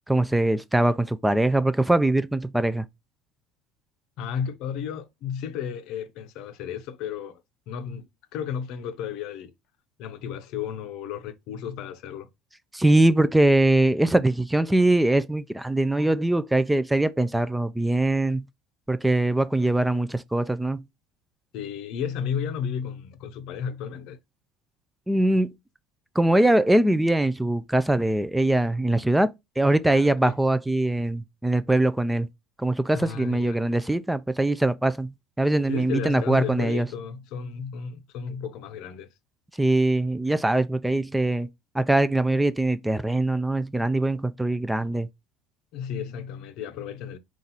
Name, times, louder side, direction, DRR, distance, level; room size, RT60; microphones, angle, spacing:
voice 1, 0.1-2.9 12.7-18.5 18.9-20.8 25.1-25.5 26.2-32.3 32.6-36.9 39.6-41.5 41.7-45.1, right 1 dB, 5° right, 0.3 m, -22 dB
voice 2, 4.2-7.4 7.7-9.5 10.0-12.3 21.5-24.2 29.9-30.3 32.9-33.6 35.7-39.1 45.7-47.2, left 8 dB, 65° left, 0.6 m, -33 dB
4.0 x 2.4 x 3.9 m
supercardioid pair, 90°, 0 cm